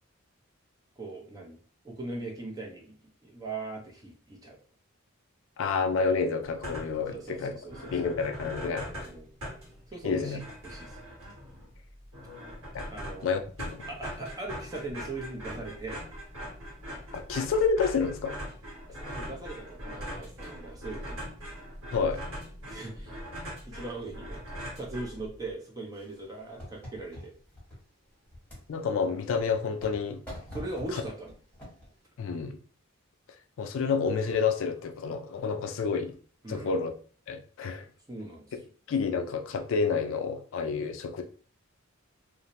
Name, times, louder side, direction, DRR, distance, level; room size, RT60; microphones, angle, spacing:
voice 1, 1.0-1.6 1.8-2.9 3.2-4.6 7.1-7.9 8.6-9.3 9.9-11.0 12.9-13.3 13.9-16.0 19.0-21.2 22.7-23.2 23.6-24.4 24.7-27.3 30.5-31.3 36.4-36.8 38.1-38.5, right 2 dB, 20° right, 0.6 m, -40 dB
voice 2, 5.6-7.5 7.9-8.9 10.0-10.4 12.7-12.8 13.2-13.8 17.1-18.5 21.9-22.3 28.7-30.2 30.9-31.0 32.2-32.6 33.6-36.2 36.5-36.9 37.3-37.9 38.9-41.2, left 5 dB, 65° left, 0.3 m, -29 dB
sound 1, 6.4-7.1 7.4-7.5 7.7-25.5, equal, 85° right, 1.2 m, -41 dB
sound 2, 25.9-27.8 28.3-28.7 29.3-30.0 30.3-31.9, equal, 5° left, 1.2 m, -43 dB
2.5 x 2.0 x 2.8 m
head